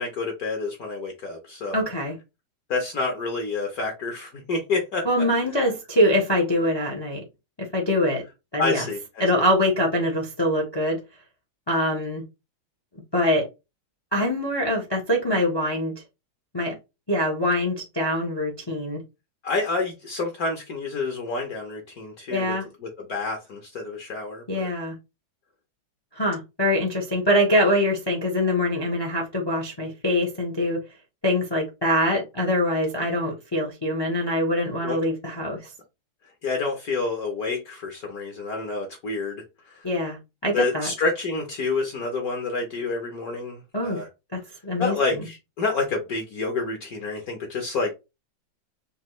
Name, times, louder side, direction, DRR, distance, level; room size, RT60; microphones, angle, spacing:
voice 1, 0.0-1.8 2.7-5.1 8.6-9.4 19.4-22.5 22.8-24.7 34.8-35.0 36.4-39.8 40.5-44.1 44.8-47.9, left 3 dB, 60° left, 1.1 m, -28 dB
voice 2, 1.7-2.1 5.0-7.2 7.6-8.2 8.5-8.8 9.2-11.0 11.7-12.2 13.1-13.5 14.1-15.9 16.5-16.7 17.1-19.0 22.3-22.6 24.5-24.9 26.1-30.8 31.2-35.6 39.8-40.9 43.7-44.0 44.3-45.2, left 1 dB, 35° left, 0.4 m, -24 dB
5.3 x 2.3 x 3.0 m
omnidirectional pair, 2.2 m